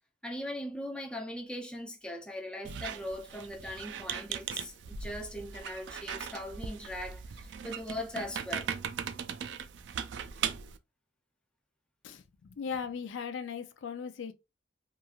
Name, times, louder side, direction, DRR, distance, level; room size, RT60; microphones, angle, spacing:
voice 1, 0.2-8.7, left 1 dB, 5° left, 0.4 m, -40 dB
Squeak, 2.6-10.8, right 7 dB, 70° right, 0.3 m, -39 dB
voice 2, 12.0-14.3, left 6 dB, 85° left, 0.4 m, -38 dB
3.0 x 2.4 x 2.3 m
head